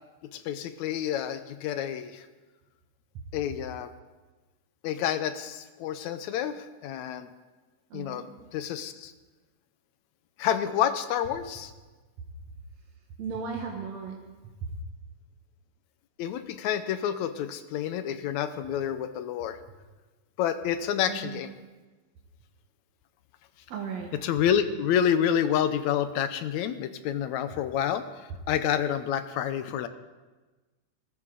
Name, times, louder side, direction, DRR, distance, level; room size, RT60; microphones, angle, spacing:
voice 1, 0.3-2.3 3.3-3.9 4.8-7.3 7.9-8.2 8.5-9.1 10.4-11.7 16.2-19.6 20.4-21.5 24.2-29.9, left 9 dB, 75° left, 11 dB, 1.9 m, -28 dB
voice 2, 7.9-8.3 13.2-14.2 14.6-14.7 21.1-21.4 23.7-24.1, right 5 dB, 60° right, -1 dB, 2.4 m, -35 dB
21.0 x 14.0 x 3.9 m, 1.2 s
omnidirectional pair, 3.6 m